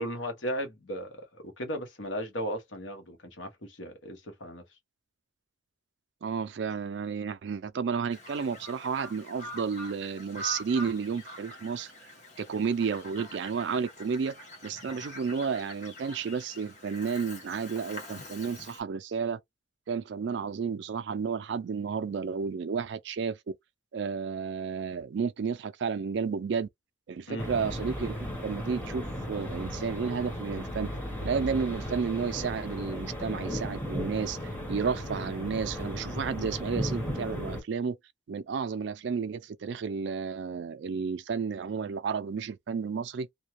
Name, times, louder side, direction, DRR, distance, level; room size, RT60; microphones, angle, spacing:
voice 1, 0.0-4.6 27.3-27.5, equal, 75° left, 1.0 m, -36 dB
voice 2, 6.2-11.9 12.4-14.4 14.6-19.4 19.9-23.4 23.9-26.7 27.1-30.9 31.2-38.0 38.3-43.3, right 5 dB, 65° right, 0.4 m, -32 dB
Bird vocalization bird call bird song, 8.1-18.8, equal, 40° left, 1.1 m, -44 dB
sound 1, 27.4-37.6, equal, 10° left, 1.0 m, -35 dB
2.5 x 2.2 x 3.0 m
head